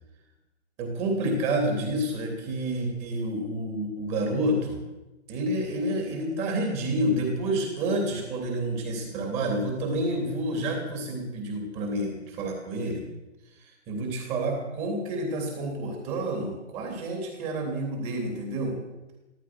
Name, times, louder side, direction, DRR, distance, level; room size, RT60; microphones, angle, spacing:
voice 1, 0.8-4.8 5.3-13.0 13.6-18.8, right 1 dB, 20° right, 2 dB, 3.2 m, -29 dB
15.0 x 14.0 x 6.3 m, 1.0 s
hypercardioid pair, 155°, 36 cm